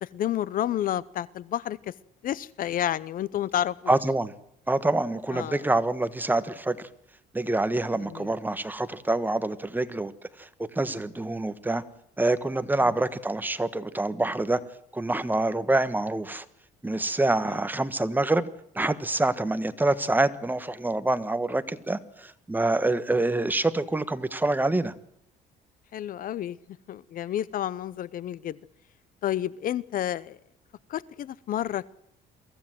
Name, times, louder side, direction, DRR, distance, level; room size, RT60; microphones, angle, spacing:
voice 1, 0.0-1.9 2.2-3.9 5.3-5.6 8.0-8.3 12.8-12.9 17.5-17.6 25.9-26.6 26.9-28.6 29.2-30.4 30.9-31.9, left 11 dB, 55° left, 21 dB, 0.7 m, -30 dB
voice 2, 3.9-4.3 4.7-6.9 7.3-10.1 10.4-11.8 12.2-14.6 14.9-16.4 16.8-18.5 18.7-24.9, right 2 dB, 10° right, 12 dB, 1.4 m, -26 dB
23.0 x 15.5 x 7.7 m, 0.72 s
cardioid pair, 110°, 17 cm